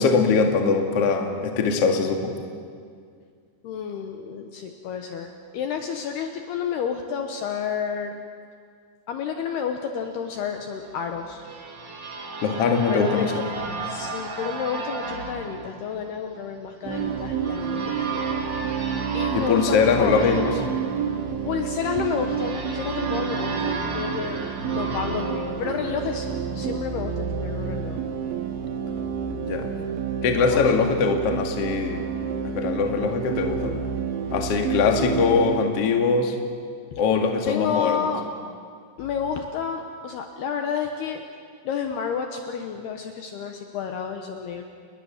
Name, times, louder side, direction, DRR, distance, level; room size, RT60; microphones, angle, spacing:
voice 1, 0.0-2.4 12.4-13.4 19.3-20.5 29.4-29.7 30.2-32.0 32.4-33.8 34.3-36.4 37.0-38.1, left 5 dB, 45° left, 4 dB, 2.2 m, -22 dB
voice 2, 3.6-8.1 9.1-11.4 12.9-13.4 13.8-18.3 18.8-20.5 21.5-28.0 30.4-30.6 34.8-35.2 36.9-37.0 37.5-38.2 39.0-41.2 41.6-44.6, left 7 dB, 70° left, 5 dB, 2.7 m, -30 dB
sound 1, 10.8-26.5, right 3 dB, 45° right, 1.5 m, -35 dB
sound 2, 16.8-35.6, right 7 dB, 75° right, 4.0 m, -29 dB
30.0 x 21.0 x 7.3 m, 2.1 s
omnidirectional pair, 5.6 m